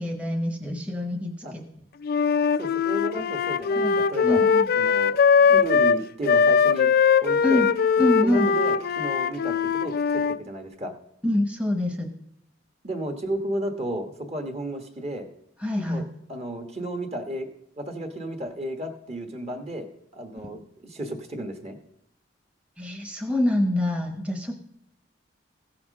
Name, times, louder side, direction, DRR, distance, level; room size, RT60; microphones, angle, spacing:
voice 1, 0.0-1.6 3.7-4.7 7.4-7.7 8.0-8.5 11.2-12.1 15.6-16.1 22.8-24.5, left 1 dB, 5° right, 3 dB, 0.9 m, -26 dB
Wind instrument woodwind instrument, 2.0-10.4, left 6 dB, 50° left, 0.4 m, -21 dB
voice 2, 2.6-4.4 4.8-5.2 5.5-6.9 7.2-7.7 8.2-9.9 10.3-10.9 12.8-15.3 15.8-16.0 16.3-17.5 17.8-19.9 20.1-21.8, right 1 dB, 35° right, 6 dB, 1.2 m, -33 dB
15.0 x 5.8 x 6.3 m, 0.78 s
head